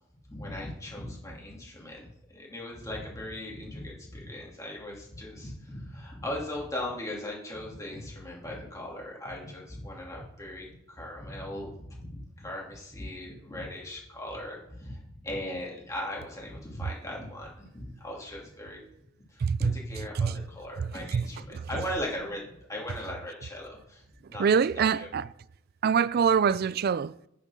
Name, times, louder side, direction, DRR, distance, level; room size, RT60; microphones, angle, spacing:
voice 1, 0.3-18.8 19.3-24.0 24.3-24.4 24.7-25.1, left 1 dB, 15° left, 2.6 m, -38 dB
voice 2, 19.4-19.8 20.2-20.4 20.8-21.2 24.4-25.3 25.8-27.1, right 6 dB, 50° right, 0.3 m, -25 dB
8.9 x 6.7 x 6.3 m
head